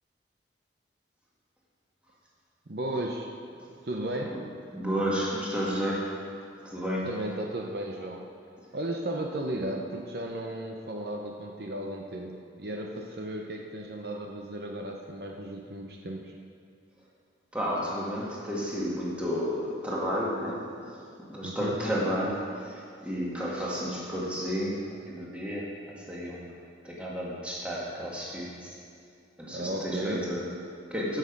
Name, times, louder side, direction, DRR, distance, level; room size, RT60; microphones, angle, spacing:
voice 1, 2.7-3.3 3.8-4.4 7.0-8.2 8.7-16.3 21.4-21.8 29.5-30.2, right 1 dB, 60° right, 1 dB, 0.8 m, -35 dB
voice 2, 4.7-6.4 6.6-7.3 17.5-26.5 26.8-28.8 29.4-31.2, equal, 5° right, -6 dB, 2.0 m, -32 dB
15.0 x 6.6 x 5.3 m, 2.3 s
head